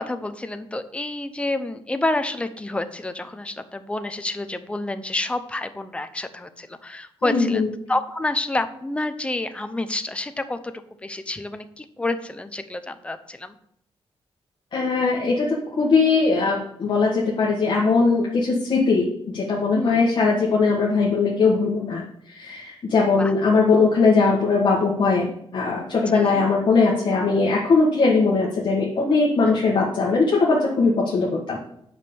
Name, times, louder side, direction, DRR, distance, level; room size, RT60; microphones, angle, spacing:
voice 1, 0.0-7.6 7.9-10.6 11.0-13.5 19.7-20.0 23.2-23.3 26.1-26.5 29.5-29.6, left 2 dB, 10° left, 9 dB, 0.6 m, -28 dB
voice 2, 7.2-7.7 14.7-19.1 19.3-22.0 22.3-31.6, left 4 dB, 50° left, -4 dB, 1.7 m, -20 dB
9.6 x 5.4 x 7.0 m, 0.72 s
wide cardioid pair, 180°, 10 cm